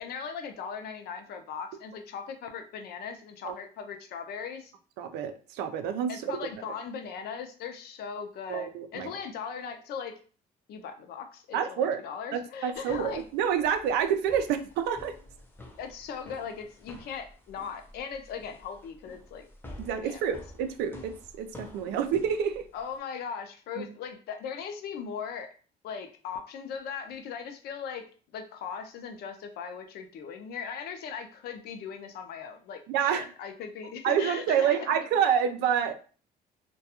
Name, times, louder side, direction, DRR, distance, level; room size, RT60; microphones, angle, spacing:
voice 1, 0.0-4.7 6.1-10.2 10.7-13.2 15.8-19.4 19.9-20.3 22.7-25.5 25.8-28.0 28.3-34.8, left 6 dB, 70° left, 6 dB, 0.5 m, -39 dB
voice 2, 5.0-6.3 8.5-9.1 11.5-12.0 12.3-15.1 19.8-22.6 23.8-23.9 32.9-33.3 34.0-35.9, right 8 dB, 90° right, 9 dB, 0.4 m, -28 dB
sound 1, 12.7-23.0, left 1 dB, 10° left, 0.6 m, -50 dB
2.3 x 2.2 x 2.8 m, 0.39 s
cardioid pair, 110°, 17 cm